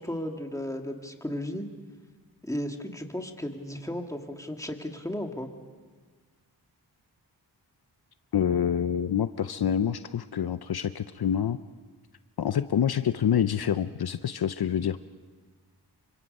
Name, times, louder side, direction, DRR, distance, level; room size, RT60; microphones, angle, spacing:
voice 1, 0.0-1.7 2.4-5.5, left 1 dB, 10° left, 3 dB, 2.1 m, -34 dB
voice 2, 8.3-11.6 12.4-15.0, left 9 dB, 65° left, 12 dB, 0.6 m, -27 dB
28.5 x 25.0 x 5.4 m, 1.5 s
wide cardioid pair, 75°, 40 cm